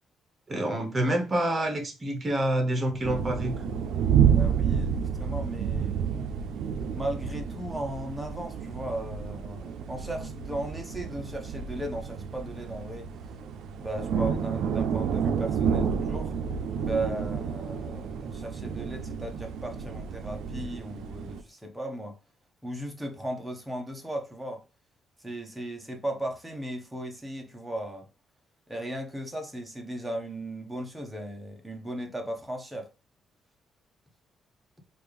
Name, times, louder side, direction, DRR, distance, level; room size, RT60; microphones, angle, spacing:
voice 1, 0.5-3.7, right 1 dB, 30° right, 1.0 m, -27 dB
sound 1, 3.0-21.4, right 7 dB, 80° right, 0.4 m, -30 dB
voice 2, 4.2-6.3 6.9-13.1 13.8-16.3 16.8-22.2 22.6-24.6 25.2-28.1 28.7-32.9, right 1 dB, 5° right, 0.8 m, -36 dB
3.3 x 2.4 x 3.4 m
cardioid pair, 90°, 0 cm